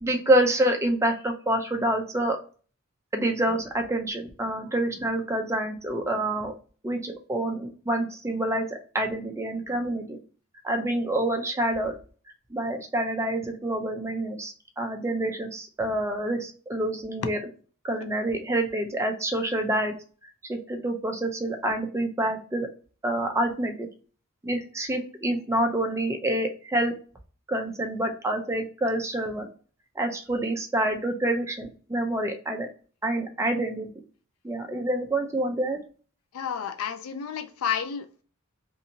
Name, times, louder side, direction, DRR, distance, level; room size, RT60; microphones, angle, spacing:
voice 1, 0.0-2.4 3.1-6.5 6.8-10.2 10.6-11.9 12.5-17.4 17.8-20.0 20.5-22.7 23.0-23.9 24.4-26.9 27.5-29.5 30.0-32.7 33.0-33.9 34.4-35.8, right 1 dB, 15° right, 3 dB, 0.5 m, -27 dB
voice 2, 36.3-38.2, left 8 dB, 85° left, 9 dB, 0.4 m, -31 dB
2.7 x 2.6 x 2.7 m, 0.40 s
head